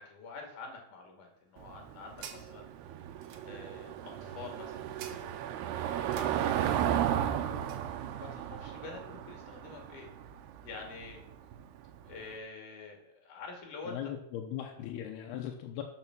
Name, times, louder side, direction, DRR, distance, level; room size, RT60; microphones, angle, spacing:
voice 1, 0.0-3.0 3.5-6.5 7.2-10.1 10.6-11.2 12.0-14.1, left 4 dB, 55° left, 2 dB, 3.8 m, -47 dB
sound 1, 1.3-7.9, right 7 dB, 65° right, 2.3 m, -53 dB
Car passing by / Engine, 1.6-12.2, right 10 dB, 85° right, 2.8 m, -34 dB
voice 2, 13.9-15.8, left 10 dB, 85° left, 3 dB, 2.9 m, -39 dB
12.5 x 6.9 x 6.1 m, 0.84 s
omnidirectional pair, 4.5 m